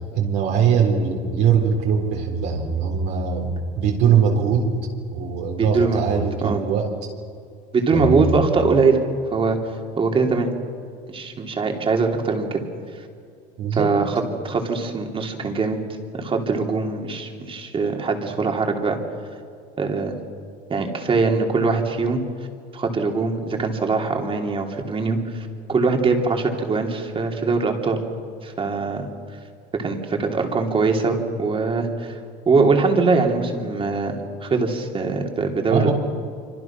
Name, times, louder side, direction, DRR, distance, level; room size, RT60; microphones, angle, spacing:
voice 1, 0.1-4.7 5.1-6.9 7.9-8.4 13.6-14.0 35.7-35.9, right 7 dB, 65° right, -1 dB, 4.1 m, -21 dB
voice 2, 5.6-6.6 7.7-9.0 9.3-9.6 10.0-10.5 11.1-12.6 13.7-15.8 16.1-19.0 19.8-20.1 20.7-22.2 22.7-25.2 25.7-28.0 28.4-29.1 29.7-32.1 32.4-35.9, right 4 dB, 25° right, 3 dB, 3.2 m, -22 dB
27.0 x 25.5 x 6.1 m, 2.3 s
cardioid pair, 120°, 19 cm